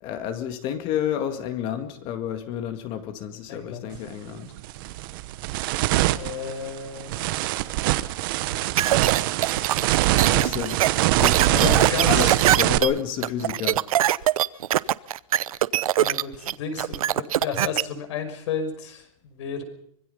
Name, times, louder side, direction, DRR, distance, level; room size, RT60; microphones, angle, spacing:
voice 1, 0.0-4.5 10.2-13.9, left 9 dB, 30° left, 2.0 m, -30 dB
voice 2, 3.5-3.9 6.2-7.4 11.5-12.4 16.0-19.6, left 6 dB, 55° left, 5.6 m, -32 dB
sound 1, 3.9-4.1 4.6-12.8, right 16 dB, 40° right, 1.0 m, -23 dB
sound 2, 8.8-17.8, right 12 dB, 85° right, 0.8 m, -23 dB
25.0 x 21.5 x 5.6 m
supercardioid pair, 170°, 18 cm